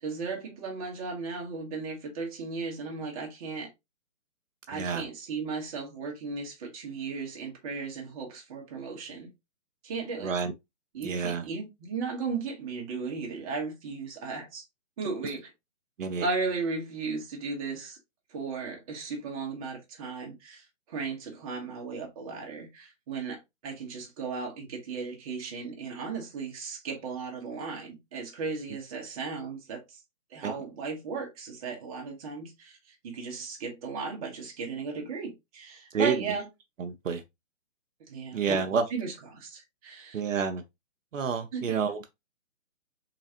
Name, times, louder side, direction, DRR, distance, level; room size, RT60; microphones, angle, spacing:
voice 1, 0.0-3.7 4.7-9.3 9.8-10.3 10.9-14.6 15.0-15.5 16.2-18.0 18.3-30.0 30.3-36.5 38.1-40.3 41.5-41.8, right 4 dB, 30° right, 1.3 m, -36 dB
voice 2, 4.7-5.0 10.2-10.5 11.0-11.4 16.0-16.2 30.4-30.5 35.9-36.1 36.8-37.2 38.3-38.8 40.1-40.6 41.1-42.1, right 6 dB, 75° right, 0.7 m, -28 dB
3.9 x 3.2 x 2.8 m
hypercardioid pair, 150°, 39 cm